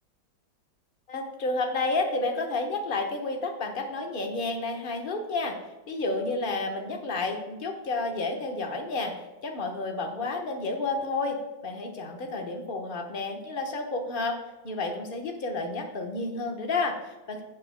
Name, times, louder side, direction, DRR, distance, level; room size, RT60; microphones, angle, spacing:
voice 1, 1.1-5.6 5.9-9.1 9.4-14.4 14.6-17.4, left 3 dB, 35° left, 2 dB, 1.0 m, -30 dB
15.5 x 7.4 x 2.2 m, 1.1 s
omnidirectional pair, 2.1 m